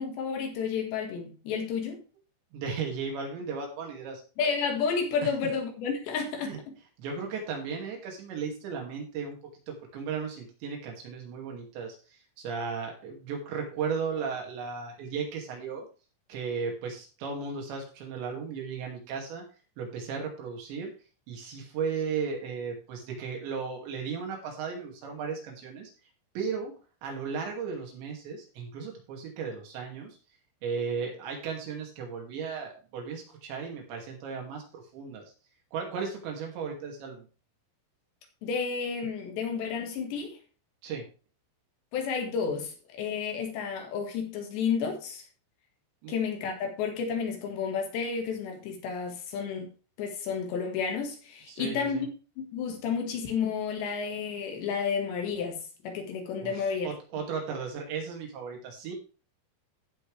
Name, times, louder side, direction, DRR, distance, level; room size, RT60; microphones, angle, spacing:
voice 1, 0.0-2.0 4.4-6.6 38.4-40.4 41.9-45.2 46.1-49.7 50.0-52.1 52.4-56.9, left 6 dB, 70° left, 4.0 m, -31 dB
voice 2, 2.5-4.2 6.4-6.6 7.0-9.4 9.7-15.9 16.3-19.4 19.8-20.9 21.3-25.9 26.4-26.7 27.0-30.2 30.6-35.2 35.7-37.3 40.8-41.1 46.0-46.2 51.5-52.0 56.4-59.0, right 5 dB, 75° right, 4.7 m, -35 dB
15.5 x 6.0 x 3.4 m
omnidirectional pair, 5.3 m